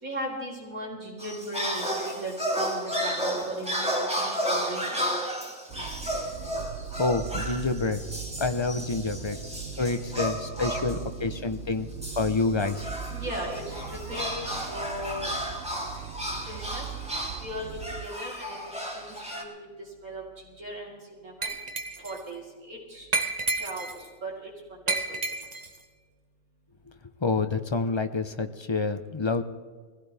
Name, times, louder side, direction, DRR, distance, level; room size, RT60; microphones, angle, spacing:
voice 1, 0.0-5.2 7.5-15.5 16.4-16.9 17.4-18.6 18.9-21.6 22.0-23.1 23.5-25.2, right 1 dB, 90° right, -2 dB, 4.9 m, -39 dB
sound 1, 1.2-11.1 12.0-19.4, equal, 5° right, 2.1 m, -33 dB
sound 2, 5.7-18.1, right 10 dB, 55° right, 0.7 m, -40 dB
voice 2, 7.0-8.0 8.4-9.4 9.8-11.9 12.2-12.9 27.2-29.4, left 3 dB, 30° left, 8 dB, 0.6 m, -27 dB
Glass, 21.4-22.2 23.1-24.1 24.9-25.8, right 3 dB, 30° right, 1.2 m, -30 dB
22.0 x 16.0 x 3.5 m, 1.5 s
omnidirectional pair, 1.5 m